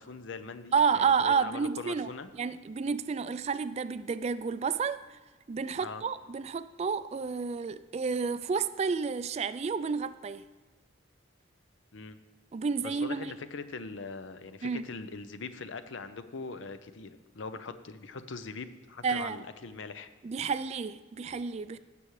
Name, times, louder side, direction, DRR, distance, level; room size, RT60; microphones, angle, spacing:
voice 1, 0.0-2.3 5.8-6.0 11.9-12.2 12.8-20.1, left 4 dB, 75° left, 11 dB, 0.6 m, -42 dB
voice 2, 0.7-2.1 2.3-5.2 5.5-10.4 12.5-13.3 14.6-14.8 19.0-19.4 20.2-21.8, right 5 dB, 35° right, 14 dB, 0.3 m, -30 dB
16.5 x 7.0 x 3.2 m, 1.3 s
head